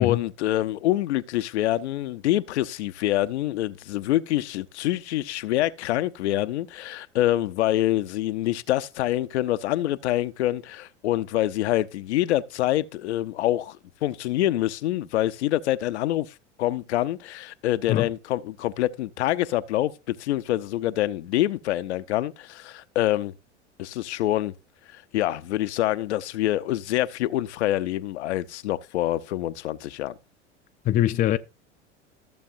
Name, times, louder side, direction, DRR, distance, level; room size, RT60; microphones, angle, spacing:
voice 1, 0.0-23.3 23.8-24.5 24.9-30.2, left 14 dB, 70° left, 0.6 m, -26 dB
voice 2, 30.8-31.4, left 12 dB, 25° left, 0.4 m, -22 dB
14.0 x 6.9 x 2.5 m
figure-of-eight pair, 80°, 35 cm